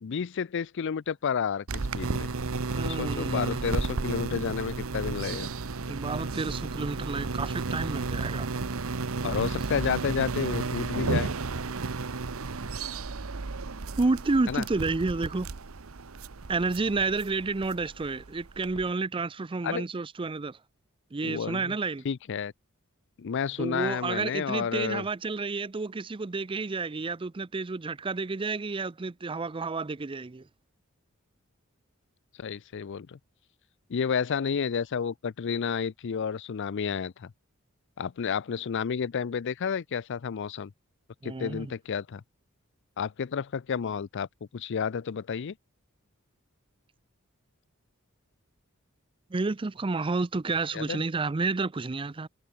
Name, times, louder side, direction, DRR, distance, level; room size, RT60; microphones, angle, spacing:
voice 1, 0.0-2.3 2.8-5.5 9.2-11.3 14.5-14.6 19.6-19.9 21.2-21.8 22.0-22.5 23.2-25.0 32.4-33.2 33.9-37.3 38.0-40.7 41.2-42.2 43.0-44.3 44.5-45.5 50.7-51.0, left 6 dB, 60° left, 0.4 m, -31 dB
sound 1, 1.7-18.9, right 3 dB, 75° right, 1.0 m, -33 dB
voice 2, 2.7-3.6 5.9-8.5 14.0-15.5 16.5-20.6 21.1-22.0 23.6-30.5 41.2-41.7 49.3-52.3, right 3 dB, 25° right, 0.5 m, -30 dB
head